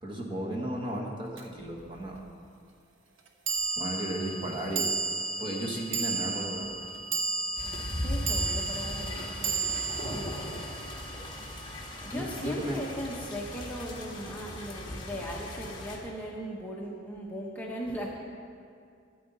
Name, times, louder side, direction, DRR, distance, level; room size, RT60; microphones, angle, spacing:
voice 1, 0.0-2.2 3.8-5.0 5.4-6.8 12.1-12.8, right 1 dB, 25° right, -1 dB, 1.3 m, -34 dB
sound 1, 1.4-1.5 3.5-11.9, right 4 dB, 75° right, 0.9 m, -33 dB
voice 2, 5.9-6.2 8.0-9.8 10.1-10.6 12.0-18.1, equal, 10° left, -3 dB, 1.0 m, -38 dB
sound 2, 7.6-16.0, left 1 dB, 25° left, 1.3 m, -38 dB
13.0 x 9.2 x 4.0 m, 2.3 s
head